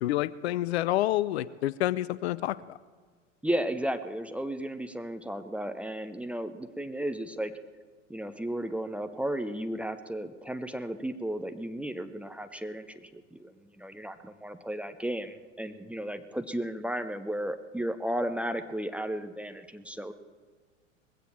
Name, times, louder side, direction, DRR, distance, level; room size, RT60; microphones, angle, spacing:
voice 1, 0.0-2.8, left 14 dB, 55° left, 19 dB, 0.6 m, -28 dB
voice 2, 3.4-7.5 8.1-20.1, right 1 dB, 5° right, 8 dB, 0.6 m, -34 dB
20.0 x 16.0 x 4.4 m, 1.6 s
figure-of-eight pair, 90°, 38 cm